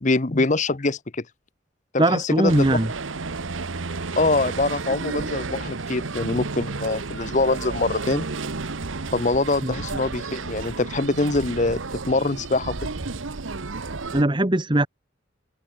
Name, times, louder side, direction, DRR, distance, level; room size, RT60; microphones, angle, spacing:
voice 1, 0.0-1.2 1.9-2.8 4.2-8.3 9.1-11.8 12.1-12.7, left 2 dB, 40° left, 0.9 m, -24 dB
voice 2, 2.0-2.9 9.6-9.7 14.1-14.9, right 1 dB, 25° right, 1.2 m, -20 dB
sound 1, 2.5-14.2, right 3 dB, 85° right, 1.1 m, -32 dB
head